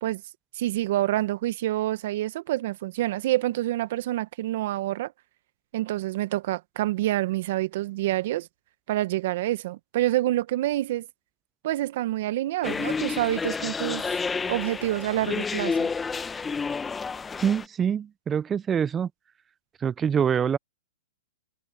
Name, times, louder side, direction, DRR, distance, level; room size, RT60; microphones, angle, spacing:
voice 1, 0.5-5.1 5.7-8.5 8.9-11.1 11.6-14.2 14.5-15.9, right 15 dB, 55° right, 1.5 m, -27 dB
sound 1, 12.6-17.7, left 5 dB, 10° left, 1.0 m, -30 dB
voice 2, 17.4-19.1 19.8-20.6, right 7 dB, 20° right, 0.5 m, -25 dB
hypercardioid pair, 130°, 0 cm